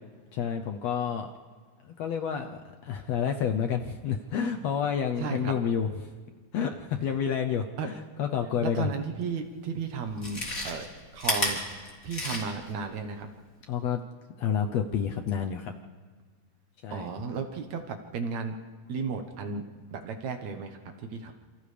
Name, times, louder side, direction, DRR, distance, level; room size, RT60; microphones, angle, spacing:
voice 1, 0.3-1.3 1.8-5.9 6.5-8.9 13.7-14.0 14.4-15.7 16.8-17.1, left 7 dB, 70° left, 5 dB, 1.7 m, -29 dB
voice 2, 5.2-5.5 7.8-7.9 8.6-10.9 11.1-13.3 16.9-18.6 18.9-19.6 19.9-21.3, right 5 dB, 65° right, 5 dB, 2.3 m, -34 dB
Chewing mastication, 9.3-9.4 10.1-12.7 13.1-13.2, left 1 dB, 25° left, 3.4 m, -31 dB
28.5 x 28.0 x 3.4 m, 1.5 s
omnidirectional pair, 3.7 m